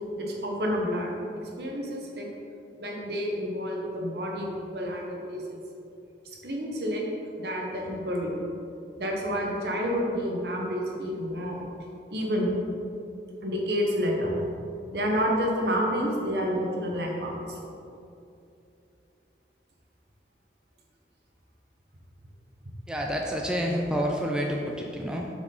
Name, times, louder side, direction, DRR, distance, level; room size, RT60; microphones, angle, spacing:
voice 1, 0.2-1.1 1.6-2.3 2.8-5.4 6.4-7.0 7.3-8.4 9.0-11.7 12.1-12.5 13.4-14.4 14.9-17.6, equal, 70° right, -1 dB, 1.1 m, -29 dB
voice 2, 22.9-25.3, equal, 5° right, -1 dB, 0.4 m, -28 dB
7.7 x 4.9 x 3.8 m, 2.7 s
head